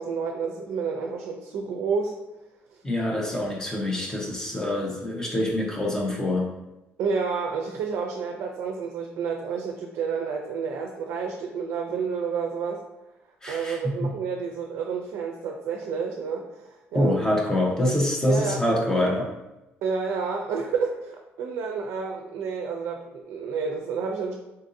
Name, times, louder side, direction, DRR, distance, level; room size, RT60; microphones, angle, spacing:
voice 1, 0.0-2.2 7.0-12.8 13.5-17.2 18.3-18.6 19.8-24.3, right 5 dB, 80° right, 2 dB, 0.4 m, -30 dB
voice 2, 2.8-6.5 13.4-14.1 16.9-19.3, left 1 dB, 15° left, -2 dB, 0.7 m, -25 dB
3.8 x 2.6 x 2.5 m, 0.98 s
cardioid pair, 145°, 5 cm